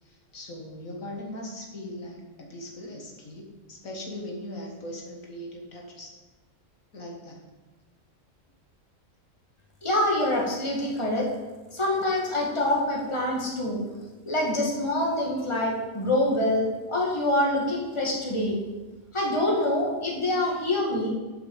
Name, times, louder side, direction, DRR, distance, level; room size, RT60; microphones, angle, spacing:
voice 1, 0.0-6.2 6.9-7.4, left 1 dB, 80° left, -1 dB, 2.1 m, -39 dB
voice 2, 9.8-11.3 11.7-13.8 14.3-18.6 19.1-21.1, left 1 dB, 20° left, -3 dB, 2.0 m, -25 dB
8.6 x 5.9 x 7.2 m, 1.2 s
omnidirectional pair, 1.4 m